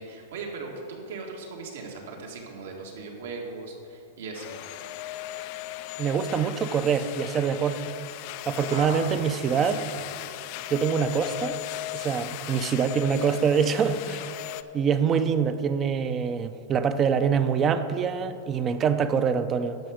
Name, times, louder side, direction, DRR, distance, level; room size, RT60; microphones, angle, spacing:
voice 1, 0.0-4.6 8.7-9.9, right 4 dB, 75° right, 0 dB, 2.0 m, -39 dB
sound 1, 4.3-14.6, left 15 dB, 45° left, 0.3 m, -37 dB
voice 2, 6.0-7.9 8.5-9.8 10.7-11.6 11.9-14.3 14.7-19.8, right 6 dB, 25° right, 11 dB, 0.5 m, -25 dB
10.5 x 6.1 x 6.5 m, 2.8 s
supercardioid pair, 145°, 0 cm